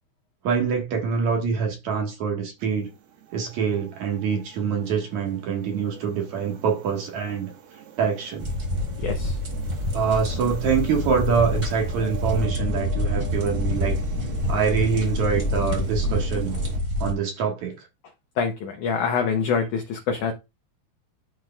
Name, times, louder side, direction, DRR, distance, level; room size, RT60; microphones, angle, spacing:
voice 1, 0.4-2.9 3.3-7.5 8.0-8.5 9.9-13.9 14.5-16.6 17.0-17.9, right 6 dB, 60° right, 2.2 m, -25 dB
sound 1, 2.6-16.8, right 9 dB, 80° right, 3.2 m, -42 dB
sound 2, 8.4-17.1, left 1 dB, 25° right, 1.9 m, -27 dB
voice 2, 9.0-9.4 18.4-20.3, left 6 dB, 85° left, 1.7 m, -25 dB
12.5 x 4.7 x 2.3 m
omnidirectional pair, 4.6 m